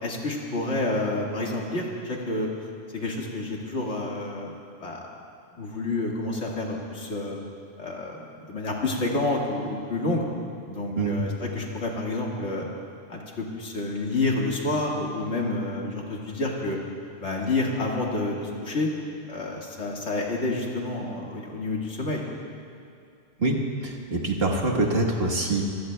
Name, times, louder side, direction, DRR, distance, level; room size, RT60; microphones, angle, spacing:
voice 1, 0.0-2.5 2.9-4.5 4.8-5.1 5.6-7.4 7.8-8.2 8.5-10.2 10.7-12.7 13.1-16.8 17.2-18.9 19.3-22.2, left 2 dB, 75° left, -2 dB, 2.1 m, -29 dB
voice 2, 23.8-25.6, right 2 dB, 55° right, 0 dB, 1.6 m, -24 dB
26.0 x 15.5 x 2.2 m, 2.4 s
omnidirectional pair, 1.2 m